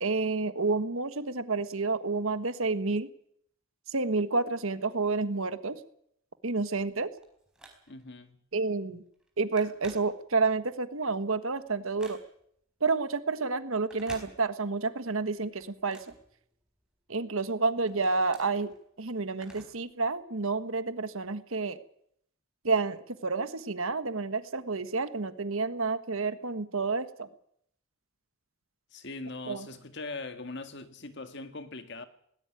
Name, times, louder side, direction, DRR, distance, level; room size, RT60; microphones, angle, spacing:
voice 1, 0.0-3.1 3.9-5.8 6.4-7.1 8.5-9.0 9.4-12.2 12.8-16.0 17.1-18.7 19.0-21.8 22.6-27.3 29.5-29.7, right 3 dB, 70° right, 1.5 m, -29 dB
Telephone, 6.9-8.2 8.7-8.9 9.1-10.6 11.1-12.6 13.8-14.9 15.2-16.9 17.4-19.9 20.2-20.3 21.2-21.3, right 1 dB, 5° right, 4.4 m, -52 dB
voice 2, 7.9-8.4 28.9-32.1, left 3 dB, 55° left, 1.9 m, -41 dB
19.0 x 17.0 x 9.3 m
head